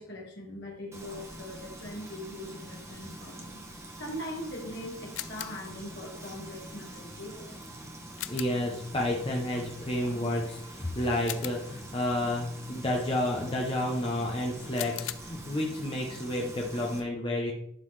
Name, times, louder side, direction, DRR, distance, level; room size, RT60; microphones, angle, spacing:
voice 1, 0.0-3.6 4.0-7.9 10.0-10.2, left 1 dB, 55° left, -1 dB, 1.7 m, -41 dB
Frying (food), 0.9-17.0, right 1 dB, 15° right, 0.8 m, -45 dB
sound 1, 5.1-5.7 8.2-8.7 11.3-11.9 14.8-15.1, left 16 dB, 70° left, 0.3 m, -39 dB
voice 2, 8.3-17.5, left 1 dB, 25° left, -1 dB, 0.7 m, -30 dB
11.5 x 3.9 x 3.2 m, 0.78 s
head